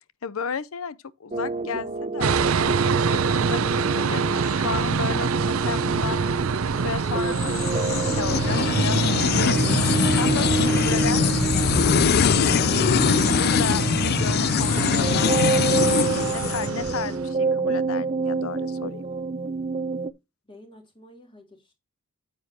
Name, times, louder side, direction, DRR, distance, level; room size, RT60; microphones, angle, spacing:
voice 1, 0.2-2.7 3.1-6.2 6.6-11.9 12.4-13.0 13.3-15.3 16.1-19.0, left 6 dB, 85° left, 0.7 m, -33 dB
sound 1, 1.3-20.1, right 3 dB, 30° right, 0.6 m, -28 dB
sound 2, 2.2-17.3, right 5 dB, 80° right, 0.6 m, -26 dB
sound 3, 7.3-17.0, left 7 dB, 50° left, 0.4 m, -23 dB
voice 2, 20.4-21.7, left 1 dB, 25° left, 3.4 m, -50 dB
9.3 x 8.1 x 2.8 m
head